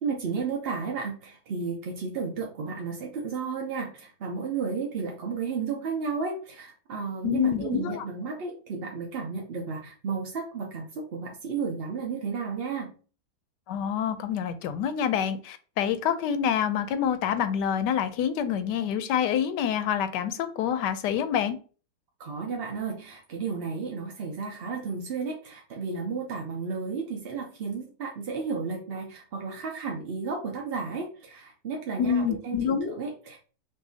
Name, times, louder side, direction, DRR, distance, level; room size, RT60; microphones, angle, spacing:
voice 1, 0.0-12.9 22.2-33.4, right 5 dB, 60° right, 0 dB, 0.6 m, -33 dB
voice 2, 7.2-8.0 13.7-21.6 32.0-33.0, left 8 dB, 80° left, 10 dB, 1.2 m, -27 dB
5.4 x 2.7 x 2.7 m, 0.38 s
omnidirectional pair, 1.8 m